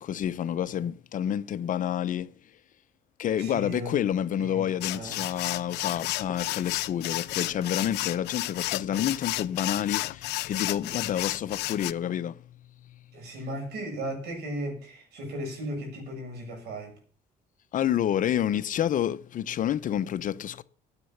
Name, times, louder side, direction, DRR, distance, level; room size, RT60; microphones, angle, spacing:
voice 1, 0.0-2.3 3.2-12.4 17.7-20.6, left 10 dB, 50° left, 0.8 m, -29 dB
voice 2, 3.4-4.0 4.4-4.7 4.9-5.2 13.1-16.9, right 1 dB, 75° right, 7.5 m, -36 dB
sound 1, 4.8-11.9, left 18 dB, 80° left, 0.6 m, -32 dB
9.9 x 8.1 x 9.2 m
cardioid pair, 110°, 17 cm